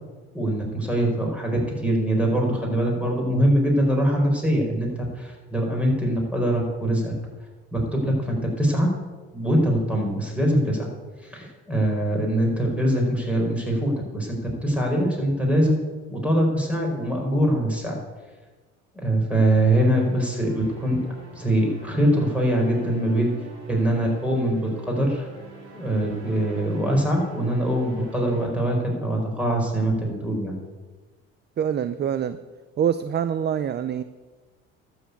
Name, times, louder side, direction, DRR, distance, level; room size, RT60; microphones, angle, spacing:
voice 1, 0.3-7.1 7.7-8.9 9.3-10.9 11.2-15.8 16.1-17.9 18.9-21.0 21.3-23.3 23.7-25.3 25.7-30.5, right 1 dB, 5° right, -1 dB, 4.9 m, -23 dB
sound 1, 19.8-28.5, right 2 dB, 70° right, 4.3 m, -44 dB
voice 2, 31.6-32.4 32.8-34.0, right 8 dB, 35° right, 13 dB, 0.6 m, -25 dB
12.5 x 7.3 x 8.4 m, 1.3 s
supercardioid pair, 95°, 30 cm